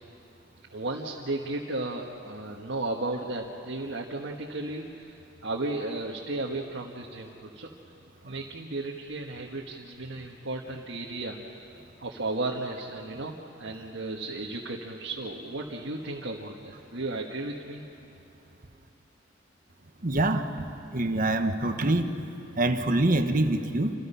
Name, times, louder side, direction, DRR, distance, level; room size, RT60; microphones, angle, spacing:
voice 1, 0.7-7.7 8.2-17.8, right 2 dB, 65° right, -1 dB, 1.6 m, -34 dB
voice 2, 20.0-20.5 20.9-22.1 22.6-23.9, right 2 dB, 45° right, 7 dB, 1.3 m, -25 dB
28.5 x 27.5 x 5.7 m, 2.9 s
head